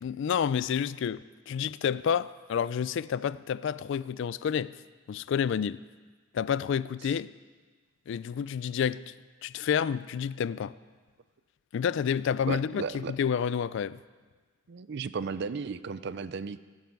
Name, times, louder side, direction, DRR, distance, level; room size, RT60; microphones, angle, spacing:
voice 1, 0.0-4.7 5.1-5.8 6.3-7.3 8.1-9.1 9.4-10.7 11.7-14.0, left 7 dB, 65° left, 0.3 m, -29 dB
voice 2, 12.5-13.1 14.7-16.6, right 5 dB, 55° right, 0.4 m, -35 dB
17.5 x 8.1 x 4.7 m
head